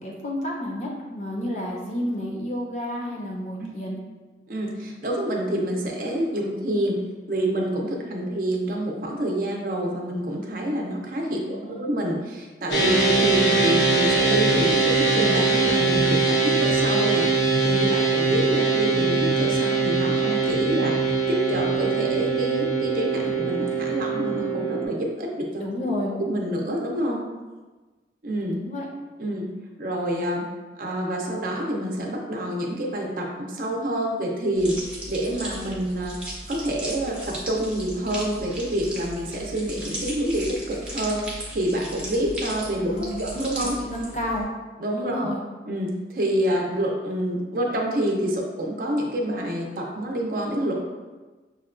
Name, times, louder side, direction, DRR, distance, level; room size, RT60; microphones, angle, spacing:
voice 1, 0.0-4.0 11.3-11.9 25.6-26.2 28.5-28.9 42.8-43.3 43.6-44.5 44.9-45.4, left 1 dB, 40° left, -2 dB, 0.6 m, -31 dB
voice 2, 4.5-7.0 7.3-17.3 17.6-25.6 26.2-27.2 28.2-28.6 29.2-29.5 29.8-30.4 30.8-34.8 35.1-36.1 36.5-42.9 43.2-43.8 44.8-45.3 45.7-50.8, right 1 dB, 50° right, 0 dB, 0.5 m, -27 dB
sound 1, 12.7-24.9, right 4 dB, 80° left, 0.8 m, -22 dB
sound 2, 34.5-44.4, right 1 dB, 5° right, 0.6 m, -36 dB
5.5 x 2.2 x 2.4 m, 1.3 s
head